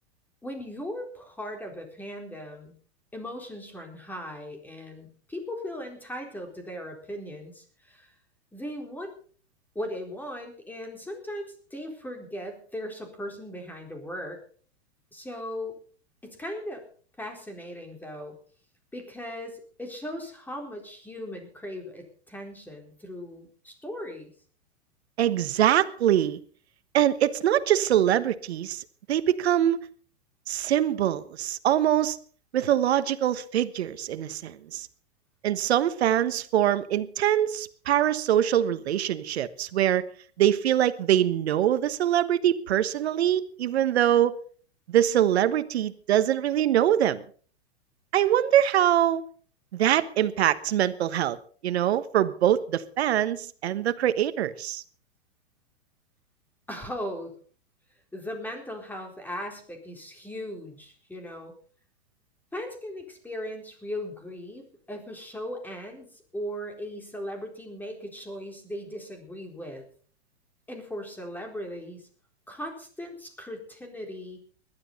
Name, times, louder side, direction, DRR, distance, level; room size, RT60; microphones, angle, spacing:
voice 1, 0.4-2.7 3.1-8.1 8.5-9.1 9.7-14.4 15.1-15.8 16.2-16.8 17.2-18.4 18.9-24.3 56.7-57.3 58.1-61.5 62.5-69.9 70.7-72.1 72.5-74.4, equal, 5° left, 4.1 m, -38 dB
voice 2, 25.2-26.4 26.9-28.8 29.1-29.9 30.5-32.2 32.5-34.9 35.4-40.0 40.4-44.4 44.9-47.2 48.1-49.2 49.7-51.4 51.6-54.8, right 11 dB, 70° right, 1.3 m, -23 dB
20.5 x 12.0 x 4.1 m
hypercardioid pair, 120°, 33 cm